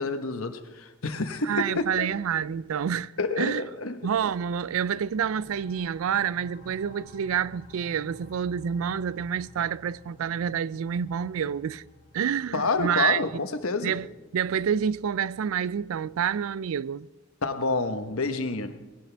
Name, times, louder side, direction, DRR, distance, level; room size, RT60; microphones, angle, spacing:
voice 1, 0.0-2.1 3.2-4.0 12.5-13.9 17.4-18.8, left 3 dB, 80° left, 1.1 m, -28 dB
voice 2, 1.4-3.6 4.0-11.8 12.1-13.3 13.8-14.1 14.3-17.1, right 8 dB, 80° right, 0.4 m, -28 dB
sound 1, 5.0-16.3, left 1 dB, 50° left, 1.4 m, -53 dB
19.5 x 17.0 x 3.4 m
head